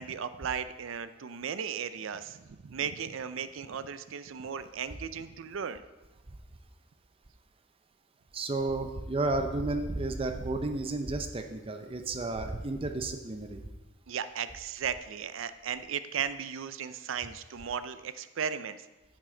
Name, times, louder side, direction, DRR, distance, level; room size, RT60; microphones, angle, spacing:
voice 1, 0.0-5.8 14.1-18.8, right 7 dB, 75° right, 13 dB, 0.5 m, -36 dB
voice 2, 8.3-13.6, right 2 dB, 25° right, 7 dB, 0.5 m, -32 dB
9.6 x 7.6 x 3.8 m, 1.1 s
head